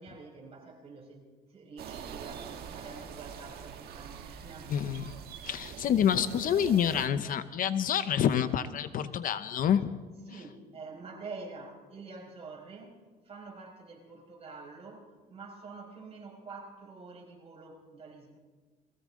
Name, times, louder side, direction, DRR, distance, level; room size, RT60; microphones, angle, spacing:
voice 1, 0.0-4.8 10.3-13.0 13.2-18.4, right 4 dB, 35° right, -1 dB, 5.1 m, -47 dB
sound 1, 1.8-7.1, right 8 dB, 70° right, 1.5 m, -44 dB
voice 2, 4.7-5.1 5.4-9.9, left 9 dB, 55° left, 12 dB, 0.7 m, -27 dB
22.0 x 15.5 x 3.7 m, 1.3 s
cardioid pair, 110°, 17 cm